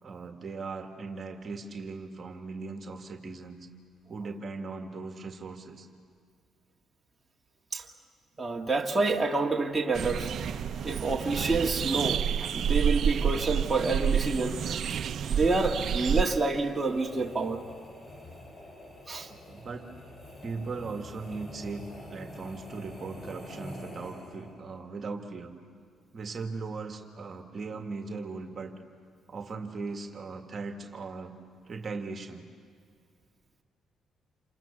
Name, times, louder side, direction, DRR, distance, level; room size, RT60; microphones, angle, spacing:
voice 1, 0.0-3.7 4.1-5.9 19.2-19.9 20.4-25.5 26.1-28.7 29.3-31.3 31.7-32.5, right 4 dB, 45° right, 4 dB, 1.9 m, -38 dB
voice 2, 8.4-10.3 10.8-14.6 15.3-17.6 19.1-19.3, right 3 dB, 20° right, 0 dB, 2.0 m, -28 dB
sound 1, 9.9-16.2, right 8 dB, 65° right, 0.7 m, -29 dB
sound 2, 10.1-24.7, left 1 dB, 30° left, 5.9 m, -48 dB
28.5 x 24.5 x 7.2 m, 2.2 s
cardioid pair, 90°, 0 cm